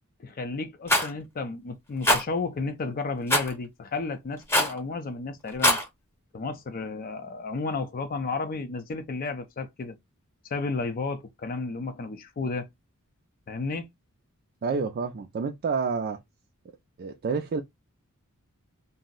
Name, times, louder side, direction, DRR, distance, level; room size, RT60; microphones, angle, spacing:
voice 1, 0.2-5.8 6.3-10.0 10.4-12.7 13.5-13.9, left 3 dB, 40° left, 0.4 m, -32 dB
Rattle, 0.9-1.1 2.0-2.2 3.3-3.5 4.5-4.8 5.5-5.8, left 1 dB, 10° left, 0.8 m, -21 dB
voice 2, 14.6-16.2 17.0-17.6, right 5 dB, 45° right, 0.3 m, -29 dB
2.5 x 2.0 x 3.8 m
head